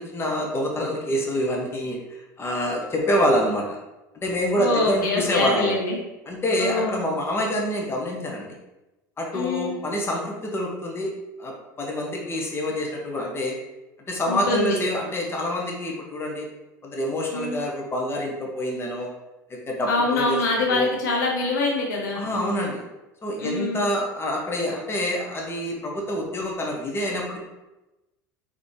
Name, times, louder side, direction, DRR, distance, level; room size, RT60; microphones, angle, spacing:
voice 1, 0.0-3.8 4.1-5.7 6.3-8.5 9.2-11.1 11.4-13.6 14.1-16.5 16.8-19.1 19.5-20.4 20.7-20.9 22.1-22.8 23.2-27.4, equal, 25° left, -1 dB, 1.1 m, -26 dB
voice 2, 4.5-6.0 6.6-7.0 9.3-9.8 14.3-14.8 17.3-17.6 19.9-22.7 23.4-23.9, left 2 dB, 80° left, -2 dB, 0.9 m, -25 dB
4.0 x 3.6 x 3.3 m, 1.0 s
hypercardioid pair, 80°, 10 cm